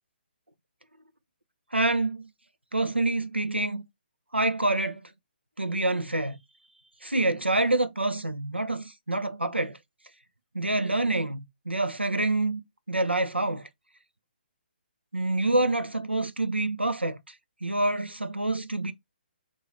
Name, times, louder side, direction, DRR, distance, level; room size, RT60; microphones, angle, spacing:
voice 1, 1.7-2.3 2.7-3.8 4.3-5.1 5.6-6.4 7.0-9.8 10.5-12.6 12.9-13.7 15.1-17.2 17.6-18.9, right 2 dB, 90° right, 0.6 m, -27 dB
3.6 x 2.5 x 3.1 m
figure-of-eight pair, 135°, 6 cm